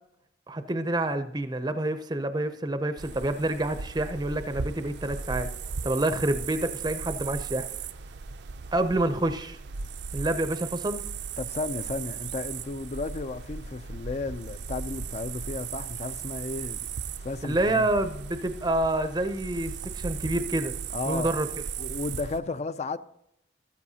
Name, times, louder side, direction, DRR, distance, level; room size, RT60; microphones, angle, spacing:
voice 1, 0.5-5.5 5.8-7.7 8.7-9.6 10.1-11.0 17.4-20.7 21.1-21.5, right 1 dB, 25° right, 0.5 m, -28 dB
sound 1, 3.0-22.4, right 6 dB, 70° right, 0.5 m, -37 dB
voice 2, 11.4-16.9 17.2-17.9 20.9-21.3 21.8-23.0, left 3 dB, 40° left, 0.4 m, -33 dB
13.5 x 13.0 x 2.8 m
head